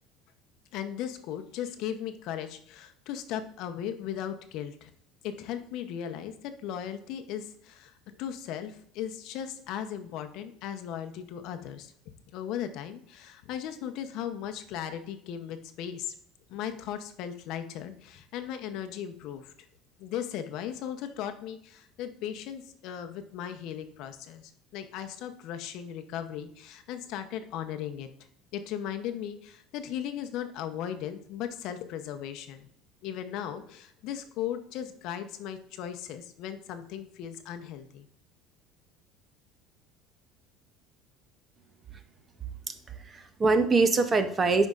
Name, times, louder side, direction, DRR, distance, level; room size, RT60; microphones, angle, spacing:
voice 1, 0.7-4.9 5.2-11.9 12.3-16.1 16.5-19.5 20.0-28.1 28.5-32.7 33.0-38.1, left 9 dB, 55° left, 8 dB, 0.7 m, -37 dB
voice 2, 42.7-44.7, right 3 dB, 20° right, 9 dB, 0.5 m, -24 dB
9.1 x 5.4 x 2.4 m, 0.65 s
cardioid pair, 165°, 0 cm